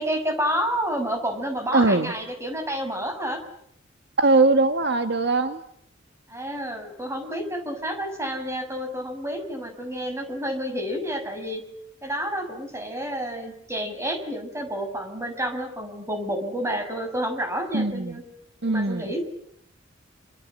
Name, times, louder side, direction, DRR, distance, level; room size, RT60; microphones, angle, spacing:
voice 1, 0.0-3.4 6.3-11.6 12.0-18.2 18.6-19.2, equal, 15° right, 6 dB, 6.1 m, -29 dB
voice 2, 1.7-2.1 4.2-5.6 17.7-18.2 18.6-19.1, right 3 dB, 60° right, 7 dB, 1.7 m, -21 dB
28.0 x 27.0 x 7.6 m, 0.71 s
head